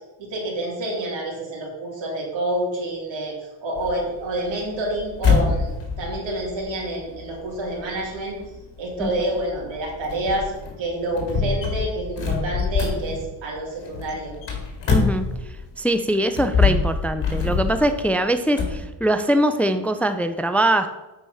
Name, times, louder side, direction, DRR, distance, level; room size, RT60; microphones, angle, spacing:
voice 1, 0.2-5.7 6.0-8.4 8.8-10.5 10.8-14.3, right 1 dB, 80° right, -3 dB, 3.0 m, -28 dB
sound 1, 3.8-15.7 16.2-18.8, left 5 dB, 70° left, 2.3 m, -25 dB
voice 2, 14.9-15.3 15.8-20.9, right 1 dB, 5° left, 9 dB, 0.4 m, -22 dB
8.3 x 4.7 x 5.7 m, 1.1 s
cardioid pair, 105°, 45 cm